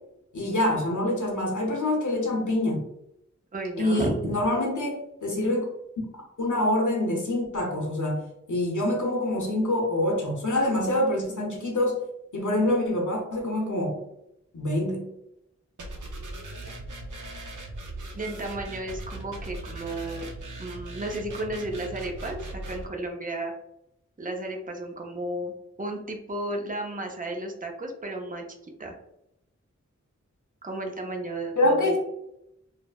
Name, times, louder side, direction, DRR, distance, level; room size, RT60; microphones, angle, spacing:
voice 1, 0.3-2.8 3.8-5.7 6.0-6.1 6.4-8.2 8.5-12.0 12.3-14.0 14.5-15.1 31.6-32.0, left 1 dB, 90° left, -1 dB, 0.7 m, -25 dB
voice 2, 3.5-4.2 18.1-20.3 20.6-23.5 24.2-25.5 25.8-28.4 28.8-29.0 30.6-32.0, right 1 dB, 30° right, 2 dB, 0.5 m, -33 dB
sound 1, 15.8-22.8, right 2 dB, 90° right, 0.5 m, -39 dB
3.1 x 2.0 x 2.2 m, 0.81 s
wide cardioid pair, 45°, 30 cm